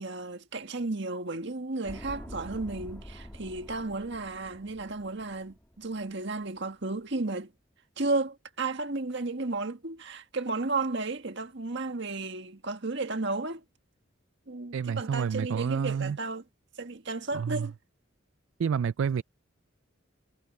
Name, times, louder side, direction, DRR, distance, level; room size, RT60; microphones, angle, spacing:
voice 1, 0.0-7.5 8.0-13.6 14.5-16.4 16.8-17.7, right 3 dB, 60° right, 1.7 m, -33 dB
sound 1, 1.8-6.1 6.4-6.5, equal, 10° left, 1.9 m, -46 dB
voice 2, 14.7-16.2 17.3-17.7 18.6-19.2, right 7 dB, 75° right, 0.4 m, -29 dB
head